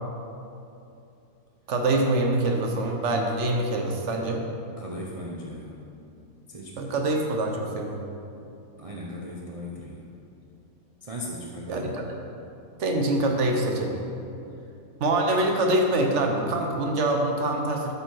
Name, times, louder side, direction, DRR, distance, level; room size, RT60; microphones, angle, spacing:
voice 1, 1.7-4.4 6.8-8.0 11.7-12.0 12.8-14.0 15.0-17.9, right 2 dB, 60° right, 2 dB, 1.1 m, -25 dB
voice 2, 4.8-5.8 6.5-6.9 8.8-10.1 11.0-11.8, left 1 dB, 40° right, -3 dB, 0.5 m, -37 dB
8.5 x 5.4 x 4.5 m, 2.7 s
omnidirectional pair, 1.5 m